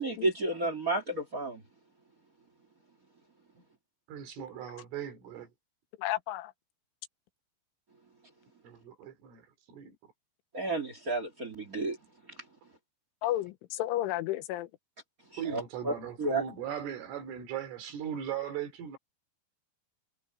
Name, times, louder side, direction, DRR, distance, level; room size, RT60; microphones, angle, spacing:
voice 1, 0.0-1.6 10.5-12.0 15.5-15.9 16.2-16.4, right 2 dB, 35° right, 1.4 m, -31 dB
voice 2, 4.1-5.5 8.6-9.9 15.4-19.0, right 9 dB, 90° right, 6.2 m, -38 dB
voice 3, 6.0-6.5 13.2-14.7, left 14 dB, 85° left, 3.5 m, -32 dB
omnidirectional pair, 5.6 m